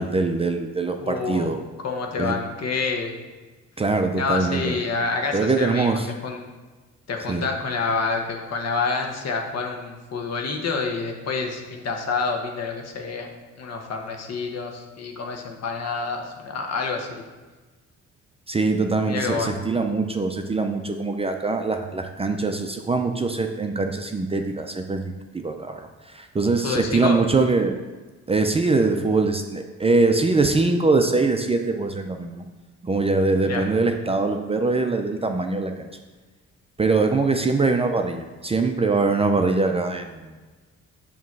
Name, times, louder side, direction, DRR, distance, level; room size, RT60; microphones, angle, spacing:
voice 1, 0.0-1.6 2.2-2.4 3.8-4.8 5.3-6.1 7.3-7.5 18.5-27.8 28.3-32.4 32.8-35.9 36.8-40.3, right 3 dB, 20° right, 5 dB, 0.5 m, -23 dB
voice 2, 1.0-1.5 1.8-3.1 4.2-6.4 7.1-13.3 13.6-17.2 19.1-19.6 26.6-27.2 33.4-33.6, left 4 dB, 55° left, 2 dB, 1.2 m, -28 dB
7.1 x 3.1 x 6.0 m, 1.3 s
cardioid pair, 90°, 30 cm